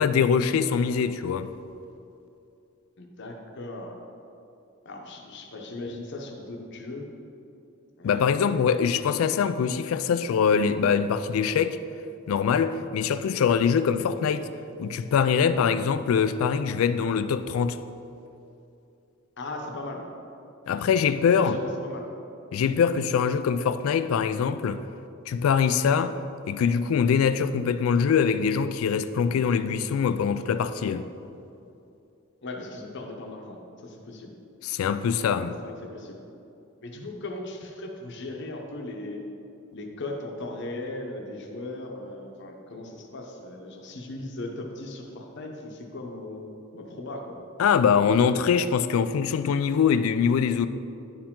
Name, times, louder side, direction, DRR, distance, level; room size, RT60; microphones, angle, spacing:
voice 1, 0.0-1.5 8.0-11.8 12.3-14.5 14.8-17.8 20.7-21.6 22.5-24.8 25.3-26.2 26.5-31.1 34.6-35.6 47.6-50.7, left 6 dB, 85° left, 0.3 m, -23 dB
voice 2, 3.0-4.0 4.8-7.1 8.0-8.8 19.4-20.1 21.3-22.1 32.4-34.3 35.5-36.2 36.8-39.2 39.7-47.4, left 2 dB, 60° left, 0.8 m, -38 dB
10.5 x 4.7 x 3.7 m
head